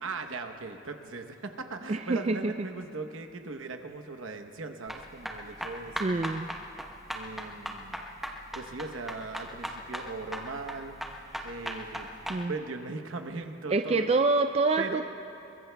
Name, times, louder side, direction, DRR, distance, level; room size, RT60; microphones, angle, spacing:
voice 1, 0.0-6.3 7.1-8.0 8.5-11.0 11.4-12.1 12.4-14.2 14.8-15.0, right 3 dB, 70° right, 6 dB, 0.9 m, -39 dB
voice 2, 1.9-2.5 6.0-6.5 12.3-12.5 13.7-15.0, right 3 dB, 30° right, 7 dB, 0.3 m, -26 dB
sound 1, 4.9-12.4, equal, ahead, 0.9 m, -38 dB
23.0 x 22.0 x 2.3 m, 2.8 s
head